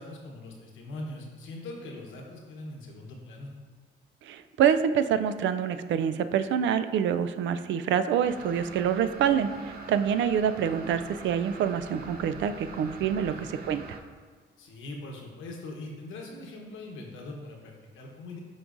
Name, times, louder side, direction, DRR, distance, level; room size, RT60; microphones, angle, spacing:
voice 1, 0.0-3.5 13.2-13.4 14.6-18.4, left 2 dB, 80° left, 0 dB, 1.1 m, -41 dB
voice 2, 4.2-9.5 9.9-14.0, right 8 dB, 70° right, 10 dB, 0.4 m, -26 dB
sound 1, 8.2-14.0, right 3 dB, 50° right, 0.8 m, -43 dB
10.5 x 3.9 x 2.5 m, 1.5 s
cardioid pair, 90°, 20 cm